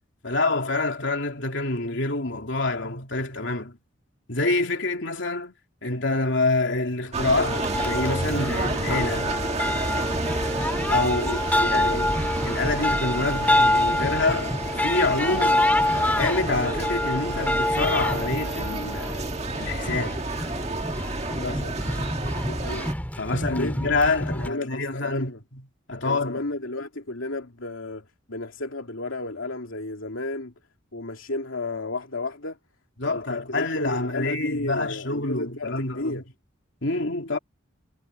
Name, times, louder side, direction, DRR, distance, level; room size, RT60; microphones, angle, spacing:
voice 1, 0.2-3.7 4.3-5.5 5.8-9.4 10.9-12.1 12.4-15.7 16.0-19.3 19.6-20.3 21.5-21.6 23.2-25.6 25.9-26.4 33.0-36.2 36.8-37.4, left 2 dB, 70° left, 3.1 m, -27 dB
sound 1, 7.1-22.9, right 2 dB, 35° right, 1.7 m, -30 dB
sound 2, 7.4-24.5, left 1 dB, 10° left, 2.4 m, -26 dB
voice 2, 11.0-12.1 21.3-22.9 23.3-23.8 24.3-25.4 26.0-30.5 30.9-32.6 33.0-36.2, left 2 dB, 90° left, 2.7 m, -33 dB
head